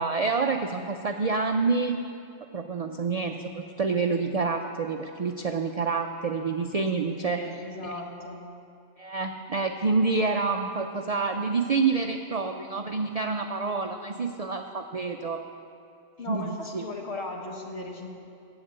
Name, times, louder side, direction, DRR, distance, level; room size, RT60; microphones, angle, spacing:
voice 1, 0.0-2.0 2.5-7.4 7.8-8.0 9.0-15.4 16.3-16.8, right 4 dB, 55° right, 5 dB, 0.4 m, -28 dB
voice 2, 7.2-8.4 16.2-18.1, left 2 dB, 60° left, 1 dB, 1.6 m, -37 dB
11.0 x 7.9 x 8.0 m, 2.6 s
omnidirectional pair, 1.3 m